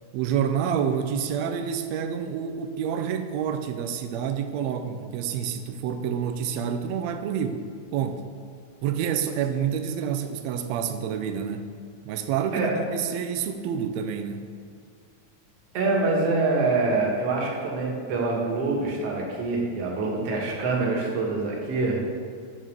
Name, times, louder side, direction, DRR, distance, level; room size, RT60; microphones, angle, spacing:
voice 1, 0.1-7.6 7.9-8.3 8.8-11.7 12.0-14.5, right 8 dB, 80° right, 8 dB, 1.6 m, -28 dB
voice 2, 15.7-22.1, right 3 dB, 60° right, -3 dB, 2.2 m, -25 dB
8.9 x 4.0 x 6.1 m, 2.2 s
omnidirectional pair, 3.4 m